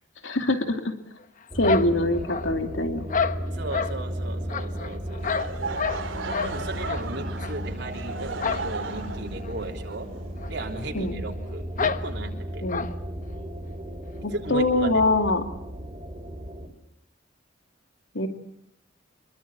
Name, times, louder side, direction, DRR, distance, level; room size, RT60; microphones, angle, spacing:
voice 1, 0.2-0.9 1.5-3.1 10.9-11.2 12.6-12.9 14.2-15.4 18.1-18.3, left 2 dB, 75° left, 6 dB, 2.7 m, -24 dB
sound 1, 1.5-16.7, equal, 25° right, 3.8 m, -35 dB
sound 2, 1.6-2.7 3.1-4.0 4.5-6.1 6.3-6.6 6.8-7.0 7.4-7.5 8.4-8.7 8.9-9.0 9.4-9.5 10.4-10.5 10.8-10.9 11.8-12.0 12.7-12.9, left 6 dB, 40° left, 1.1 m, -28 dB
voice 2, 3.5-5.8 6.2-10.1 10.5-12.6 14.3-15.0, right 2 dB, 65° right, 1 dB, 3.4 m, -36 dB
Laughter / Crowd, 5.2-11.1, right 4 dB, 80° right, 2.9 m, -36 dB
26.0 x 23.5 x 8.9 m, 0.75 s
head